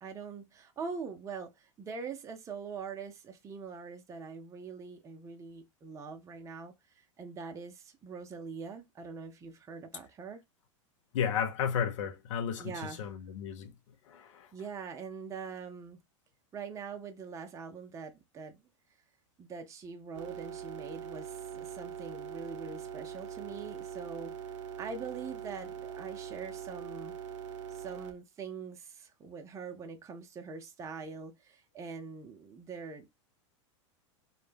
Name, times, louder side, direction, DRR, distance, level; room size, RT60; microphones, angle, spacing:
voice 1, 0.0-10.4 12.6-13.1 14.5-16.0 16.5-18.6 19.4-24.4 24.8-27.2 27.7-33.1, right 5 dB, 20° right, 0.4 m, -43 dB
voice 2, 11.1-13.7 14.1-14.5, left 7 dB, 75° left, 0.5 m, -33 dB
sound 1, 20.1-28.1, right 8 dB, 70° right, 0.5 m, -42 dB
2.1 x 2.0 x 3.2 m
hypercardioid pair, 105°, 16 cm